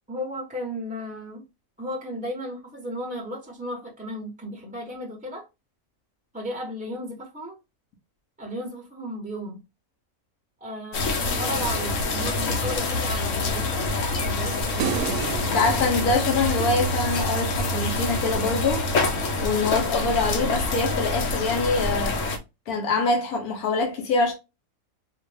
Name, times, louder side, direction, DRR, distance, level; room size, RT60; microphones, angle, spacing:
voice 1, 0.1-1.5 1.8-5.5 6.3-7.6 8.4-9.6 10.6-14.0 14.2-15.0, equal, 5° right, 1.0 m, -34 dB
sound 1, 10.9-22.4, left 2 dB, 65° left, 1.1 m, -26 dB
sound 2, 14.8-17.2, right 9 dB, 90° right, 1.1 m, -32 dB
voice 2, 15.5-18.9 19.4-22.2 22.7-24.3, left 3 dB, 90° left, 1.4 m, -24 dB
4.4 x 2.5 x 3.3 m
omnidirectional pair, 1.5 m